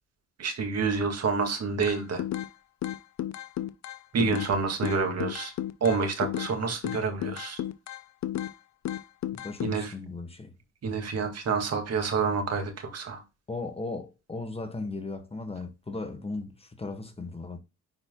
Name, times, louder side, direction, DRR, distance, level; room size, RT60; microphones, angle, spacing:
voice 1, 0.4-2.2 4.1-5.5 5.8-7.6 9.6-9.9 10.8-13.2, right 5 dB, 55° right, 2.1 m, -28 dB
sound 1, 1.8-2.5 2.8-4.5 4.8-6.5 6.8-8.5 8.8-9.7, left 12 dB, 65° left, 0.7 m, -33 dB
voice 2, 9.3-10.5 13.5-17.6, left 3 dB, 20° left, 1.2 m, -37 dB
9.6 x 4.4 x 2.2 m
cardioid pair, 90°, 30 cm